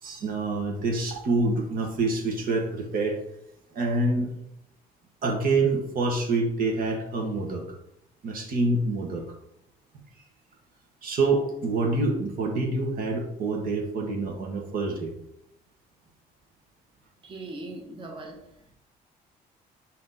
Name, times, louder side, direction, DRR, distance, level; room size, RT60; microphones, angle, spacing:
voice 1, 0.0-3.2 3.7-4.3 5.2-7.6 8.2-9.2 11.0-15.1, right 3 dB, 60° right, 2 dB, 1.3 m, -26 dB
voice 2, 17.2-18.8, right 2 dB, 30° right, 0 dB, 1.2 m, -40 dB
5.8 x 2.9 x 5.5 m, 0.80 s
cardioid pair, 110°, 17 cm